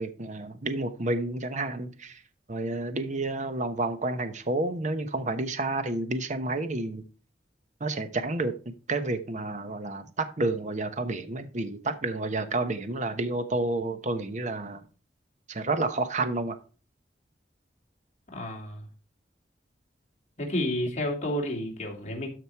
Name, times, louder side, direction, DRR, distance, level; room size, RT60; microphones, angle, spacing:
voice 1, 0.0-2.2 2.5-7.0 7.8-14.8 15.5-16.6, right 2 dB, 45° right, 1.0 m, -30 dB
voice 2, 18.3-18.9 20.4-22.3, left 1 dB, 40° left, 2.7 m, -30 dB
13.0 x 5.0 x 4.6 m
head